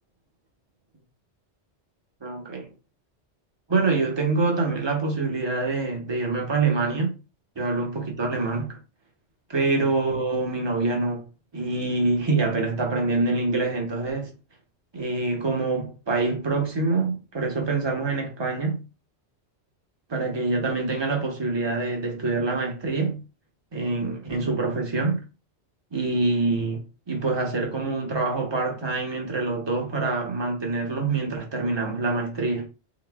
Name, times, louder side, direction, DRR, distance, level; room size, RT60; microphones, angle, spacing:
voice 1, 2.2-2.7 3.7-7.1 7.6-8.8 9.5-11.2 11.5-14.3 14.9-18.8 20.1-23.2 23.7-25.2 25.9-26.8 27.1-32.7, right 3 dB, 25° right, 0.9 m, -25 dB
4.0 x 3.6 x 2.3 m
omnidirectional pair, 1.2 m